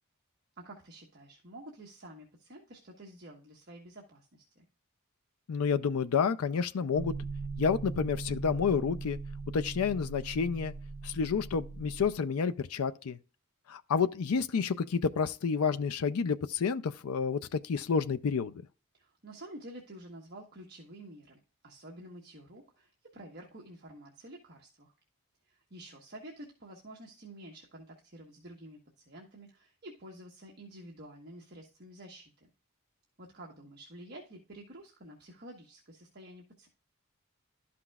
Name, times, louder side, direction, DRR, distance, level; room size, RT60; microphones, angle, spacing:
voice 1, 0.5-4.6 18.9-24.9 25.5-32.5 33.2-36.7, right 1 dB, 45° right, 1.3 m, -50 dB
voice 2, 5.5-7.1 7.6-9.2 9.5-10.7 11.0-13.2 13.7-18.5, left 5 dB, 85° left, 0.4 m, -29 dB
sound 1, 6.9-12.1, right 4 dB, 75° right, 0.6 m, -40 dB
12.0 x 5.9 x 2.4 m
head